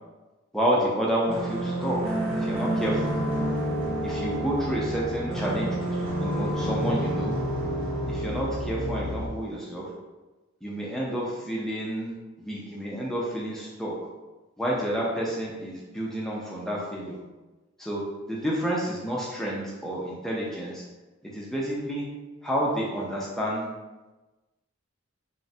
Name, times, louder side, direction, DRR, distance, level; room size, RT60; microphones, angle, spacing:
voice 1, 0.5-2.1 2.4-3.2 4.0-7.3 8.1-9.9 10.6-12.1 12.4-13.9 14.6-17.2 17.8-20.8 21.3-22.0 22.4-23.6, right 1 dB, ahead, -5 dB, 0.3 m, -29 dB
sound 1, 1.3-9.3, right 1 dB, 70° right, 0.5 m, -29 dB
3.0 x 2.1 x 2.6 m, 1.2 s
head